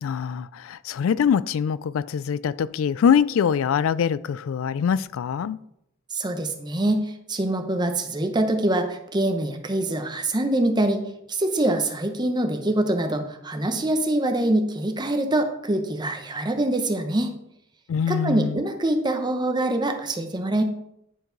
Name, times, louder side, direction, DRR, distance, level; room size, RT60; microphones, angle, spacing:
voice 1, 0.0-5.6 17.9-18.6, left 7 dB, 70° left, 0.3 m, -23 dB
voice 2, 6.1-11.0 11.3-17.3 18.1-20.6, right 1 dB, 20° right, 0.8 m, -24 dB
10.0 x 4.6 x 3.9 m
head